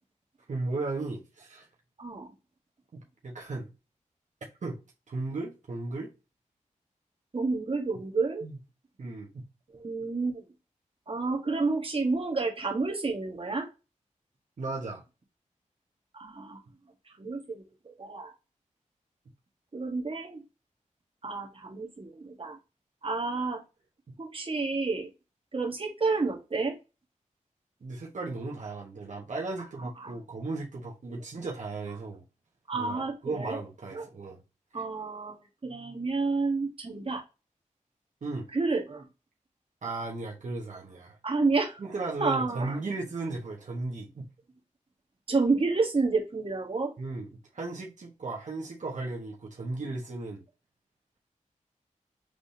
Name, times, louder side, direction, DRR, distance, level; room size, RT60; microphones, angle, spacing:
voice 1, 0.5-1.7 2.9-3.7 4.6-4.8 5.1-6.1 8.4-8.6 9.0-9.5 14.6-15.0 27.8-32.2 32.7-34.4 38.2-38.5 39.8-41.2 41.8-44.3 47.0-47.3 47.5-50.4, right 3 dB, 70° right, 1.2 m, -36 dB
voice 2, 7.3-8.4 9.7-10.4 11.1-13.7 16.1-16.6 17.2-17.6 18.0-18.3 19.7-20.4 21.2-22.6 23.0-23.6 24.2-25.1 25.5-26.8 30.0-30.1 32.7-33.6 33.9-34.1 34.7-35.4 35.6-37.2 38.5-39.0 41.2-41.8 42.2-42.8 45.3-46.9, right 3 dB, 45° right, 1.4 m, -29 dB
4.8 x 3.6 x 2.8 m
wide cardioid pair, 75°, 13 cm